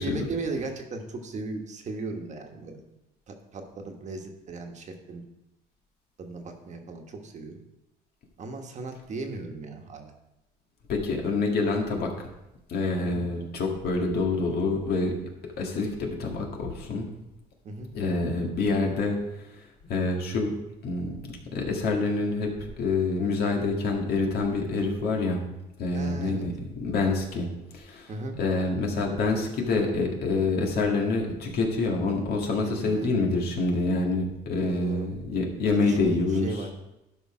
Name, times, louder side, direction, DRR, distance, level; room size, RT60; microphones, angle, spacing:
voice 1, 0.0-2.8 3.3-5.3 6.2-7.6 8.4-10.1 13.0-13.3 17.6-17.9 25.9-26.5 28.1-28.4 32.8-33.1 34.6-35.1 35.7-36.7, right 3 dB, 45° right, 4 dB, 1.4 m, -36 dB
voice 2, 10.9-12.3 12.7-15.1 15.6-17.1 17.9-19.6 19.9-20.5 20.8-25.4 25.8-27.5 27.7-28.1 28.4-36.5, left 3 dB, 70° left, 1 dB, 1.9 m, -27 dB
12.0 x 5.1 x 4.9 m, 0.93 s
cardioid pair, 110°, 17 cm